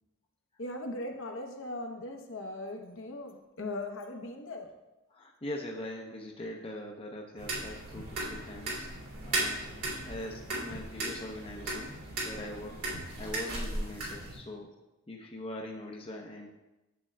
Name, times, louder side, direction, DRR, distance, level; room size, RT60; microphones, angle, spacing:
voice 1, 0.6-4.7, left 2 dB, 60° left, 3 dB, 0.8 m, -39 dB
voice 2, 5.1-8.9 9.2-12.0 12.2-12.8 13.2-14.7 15.1-16.5, left 1 dB, 25° left, 0 dB, 0.6 m, -42 dB
sound 1, 7.4-14.4, right 2 dB, 85° right, 2.5 m, -36 dB
8.6 x 7.4 x 2.2 m, 1.0 s
head